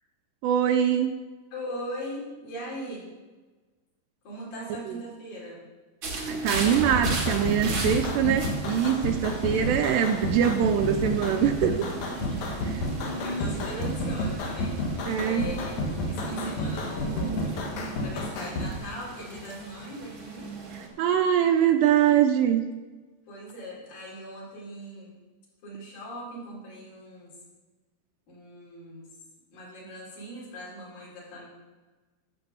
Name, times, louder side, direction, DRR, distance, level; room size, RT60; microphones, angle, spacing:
voice 1, 0.4-1.1 6.3-11.8 15.1-15.4 21.0-22.6, right 9 dB, 80° right, 6 dB, 2.7 m, -23 dB
voice 2, 1.5-3.1 4.2-5.6 9.5-9.7 11.9-12.9 13.2-14.8 15.2-15.8 16.0-17.5 18.0-20.5 23.3-25.2 25.6-27.4 28.3-29.1 29.5-31.5, equal, 50° left, -6 dB, 5.2 m, -40 dB
sound 1, 6.0-20.9, right 2 dB, 55° right, 1.4 m, -36 dB
sound 2, 6.5-18.7, left 1 dB, 65° left, 1.8 m, -31 dB
12.5 x 6.8 x 7.0 m, 1.3 s
omnidirectional pair, 5.2 m